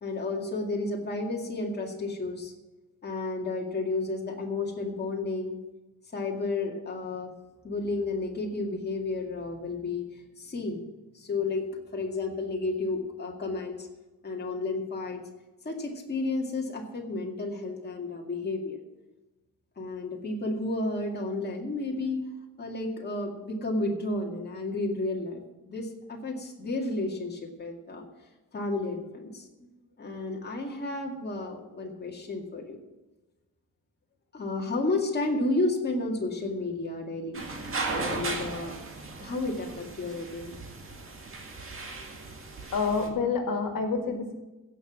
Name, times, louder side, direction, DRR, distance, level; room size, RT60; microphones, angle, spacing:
voice 1, 0.0-2.5 3.0-5.6 6.1-7.3 7.6-10.9 11.1-11.7 11.9-13.9 14.2-15.2 15.6-18.8 19.8-22.2 22.6-25.4 25.7-28.0 28.5-29.5 30.0-32.8 34.3-38.8 39.2-40.6, left 2 dB, 30° left, -1 dB, 2.1 m, -32 dB
sound 1, 37.3-43.1, right 3 dB, 40° right, 2.0 m, -36 dB
voice 2, 42.7-44.3, left 4 dB, 80° left, 4 dB, 2.0 m, -28 dB
16.5 x 7.0 x 6.1 m, 1.1 s
wide cardioid pair, 175°, 34 cm